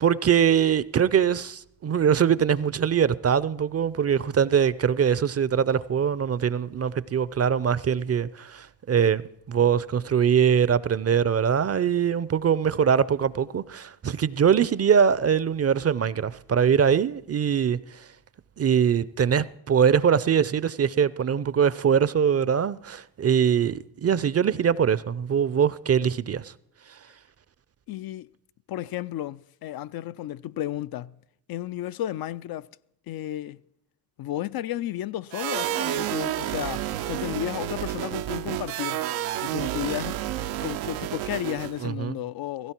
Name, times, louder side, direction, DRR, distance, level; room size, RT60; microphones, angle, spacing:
voice 1, 0.0-9.2 9.5-17.8 18.6-26.5 41.8-42.2, right 7 dB, 30° right, 0.6 m, -22 dB
voice 2, 27.9-28.3 28.7-31.1 31.5-32.7 33.1-33.6 34.2-39.0 39.4-40.2 40.6-42.7, left 13 dB, 55° left, 0.5 m, -33 dB
sound 1, 35.3-41.9, right 13 dB, 80° right, 0.8 m, -30 dB
16.5 x 16.0 x 4.5 m
hypercardioid pair, 50°, 46 cm